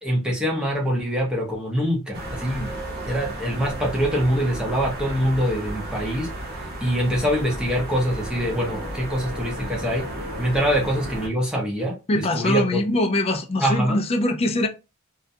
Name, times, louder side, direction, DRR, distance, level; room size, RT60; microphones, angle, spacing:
voice 1, 0.0-2.7 3.1-6.3 6.8-10.1 10.4-12.8 13.6-14.0, equal, 5° right, 0.7 m, -24 dB
sound 1, 2.1-11.3, right 1 dB, 45° right, 0.8 m, -33 dB
voice 2, 12.1-14.7, left 1 dB, 25° left, 0.3 m, -22 dB
2.3 x 2.1 x 2.7 m
head